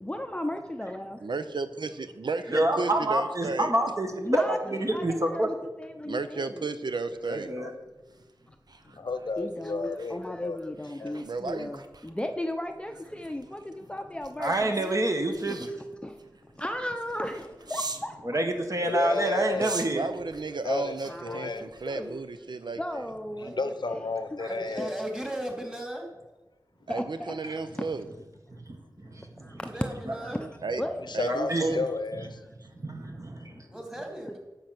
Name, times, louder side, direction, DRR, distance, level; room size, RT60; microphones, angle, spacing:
voice 1, 0.0-1.2 4.3-4.6 4.9-6.6 9.4-15.0 16.0-16.2 16.6-18.3 21.0-22.2 22.8-23.5 23.8-24.0 24.8-24.9 26.9-27.3 29.4-29.7 30.2-30.4 30.8-31.0 31.7-31.9, left 1 dB, 15° left, 0.6 m, -35 dB
voice 2, 1.2-3.7 6.0-7.5 11.2-11.7 19.6-22.8 26.9-28.0 30.6-30.8 31.1-31.8, right 3 dB, 75° right, 0.6 m, -33 dB
voice 3, 2.5-5.5 7.3-7.7 14.4-15.7 18.2-20.1 24.4-24.5 28.6-29.6 30.1-30.2 31.3-31.7 32.6-33.7, right 1 dB, 45° right, 1.6 m, -28 dB
sound 1, 7.0-18.1 18.8-22.4 22.8-23.0, right 3 dB, 60° right, 0.9 m, -45 dB
voice 4, 8.8-10.6 11.0-11.2 18.9-19.8 20.6-21.0 21.2-21.7 23.4-24.9 28.5-28.6 29.0-29.5 31.0-32.5 33.3-33.7, left 3 dB, 70° left, 0.7 m, -33 dB
voice 5, 23.4-23.7 24.5-26.1 29.7-30.4 33.7-34.4, right 1 dB, 10° right, 2.7 m, -36 dB
10.0 x 7.6 x 6.0 m
wide cardioid pair, 70°, 8 cm